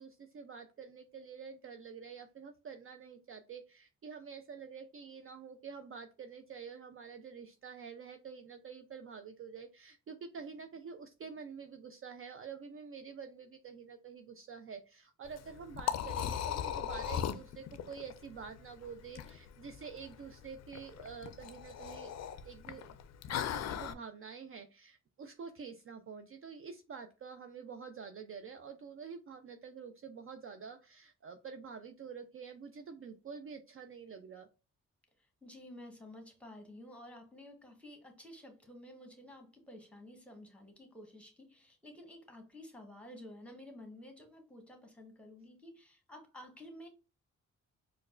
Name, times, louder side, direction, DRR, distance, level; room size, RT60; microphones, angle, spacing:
voice 1, 0.0-22.2 22.4-23.0 23.3-34.5, right 6 dB, 40° right, 0.4 m, -48 dB
Liquid, 15.2-23.9, left 9 dB, 55° left, 0.4 m, -39 dB
voice 2, 35.2-46.9, left 1 dB, 5° left, 1.2 m, -52 dB
4.5 x 2.2 x 2.4 m
supercardioid pair, 55°, 32 cm